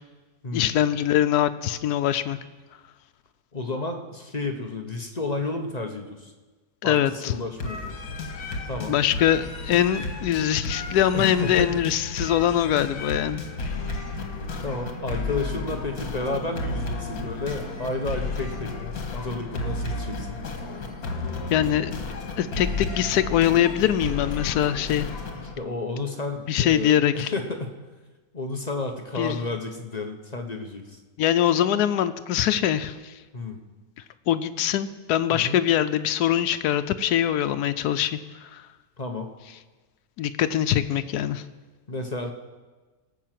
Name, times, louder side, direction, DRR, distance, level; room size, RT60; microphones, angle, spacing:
voice 1, 0.5-2.4 6.8-7.3 8.9-13.4 21.5-22.1 22.4-25.1 26.5-27.3 29.2-29.4 31.2-33.1 34.3-38.6 40.2-41.4, left 11 dB, 90° left, 11 dB, 1.2 m, -23 dB
voice 2, 3.5-6.3 6.8-8.0 8.7-8.9 11.1-11.8 14.6-20.4 25.6-27.8 28.3-31.0 33.3-33.6 35.3-35.6 39.0-39.3 41.9-42.3, left 2 dB, 30° left, 4 dB, 0.9 m, -31 dB
sound 1, 7.6-25.5, left 3 dB, 70° left, 1.9 m, -33 dB
18.5 x 6.2 x 7.6 m, 1.3 s
omnidirectional pair, 1.6 m